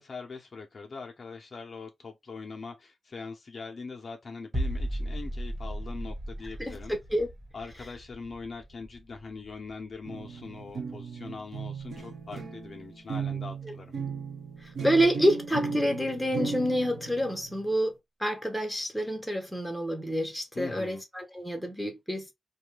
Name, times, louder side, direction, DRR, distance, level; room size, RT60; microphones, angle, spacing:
voice 1, 0.0-6.9 7.5-14.0 20.5-21.0, left 4 dB, 45° left, 0.6 m, -42 dB
sound 1, 4.5-10.2 10.5-10.7, equal, 25° right, 1.4 m, -36 dB
voice 2, 6.6-7.3 13.6-13.7 14.6-17.9 18.2-22.3, equal, ahead, 0.7 m, -28 dB
sound 2, 10.1-17.7, right 5 dB, 70° right, 0.7 m, -36 dB
2.7 x 2.3 x 3.1 m
wide cardioid pair, 135°, 0 cm